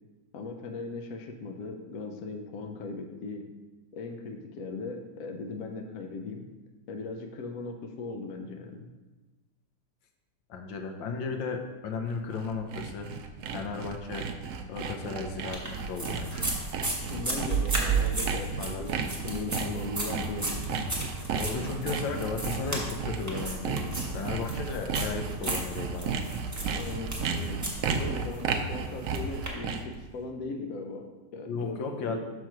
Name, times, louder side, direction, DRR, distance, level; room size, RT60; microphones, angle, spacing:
voice 1, 0.3-3.5 3.9-6.5 6.9-8.9 17.1-18.5 18.8-20.6 26.7-31.8 32.0-32.2, left 3 dB, 60° left, 4 dB, 1.0 m, -38 dB
voice 2, 10.5-13.1 13.5-14.3 14.7-16.5 18.6-18.8 21.3-26.1 31.5-32.2, left 4 dB, 80° left, 4 dB, 1.5 m, -35 dB
Sawing, 12.1-30.0, right 5 dB, 75° right, 0.7 m, -34 dB
sound 1, 15.5-29.5, right 3 dB, 10° right, 0.9 m, -34 dB
6.2 x 4.6 x 5.9 m, 1.2 s
omnidirectional pair, 2.0 m